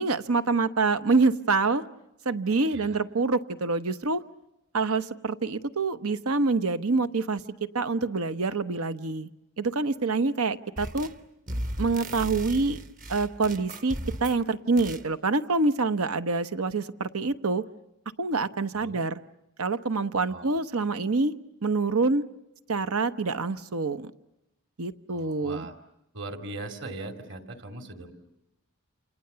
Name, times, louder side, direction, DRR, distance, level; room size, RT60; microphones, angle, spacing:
voice 1, 0.0-1.8 2.2-4.2 4.7-7.4 7.7-9.3 9.6-11.1 11.8-12.8 13.1-17.6 18.2-19.2 19.6-21.3 21.6-22.2 22.7-24.1 24.8-25.7, right 3 dB, 85° right, 11 dB, 1.0 m, -26 dB
sound 1, 10.8-11.2 11.5-14.4 14.8-15.1, right 1 dB, 35° right, 1.0 m, -36 dB
voice 2, 25.1-25.7 26.1-28.1, right 2 dB, 55° right, 6 dB, 2.8 m, -40 dB
29.0 x 27.5 x 6.9 m, 0.91 s
head